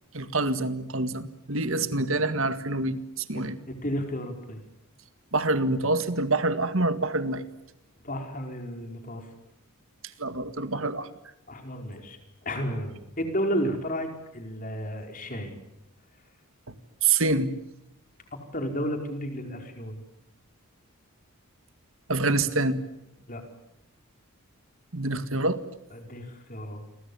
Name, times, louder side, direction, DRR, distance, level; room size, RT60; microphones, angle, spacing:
voice 1, 0.1-3.6 5.3-7.4 10.2-11.1 17.0-17.5 22.1-22.8 24.9-25.6, right 3 dB, 60° right, 11 dB, 2.0 m, -26 dB
voice 2, 1.7-2.1 3.3-4.6 8.0-9.3 11.5-15.5 18.5-20.0 23.3-23.4 25.9-26.8, equal, 35° left, 5 dB, 5.0 m, -33 dB
29.5 x 23.5 x 7.2 m, 0.82 s
head